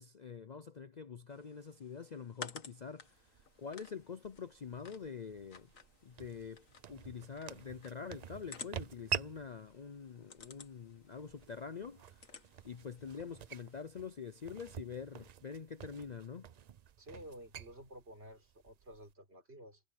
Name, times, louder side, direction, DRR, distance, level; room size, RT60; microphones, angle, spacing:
voice 1, 0.0-3.3 3.6-5.7 6.0-12.3 12.6-16.5, left 6 dB, 45° left, 0.6 m, -46 dB
sound 1, 1.3-13.8, left 5 dB, 85° left, 2.0 m, -55 dB
sound 2, 3.0-19.1, right 9 dB, 75° right, 0.3 m, -48 dB
voice 2, 17.0-19.8, equal, 50° right, 6.0 m, -52 dB
omnidirectional pair, 1.3 m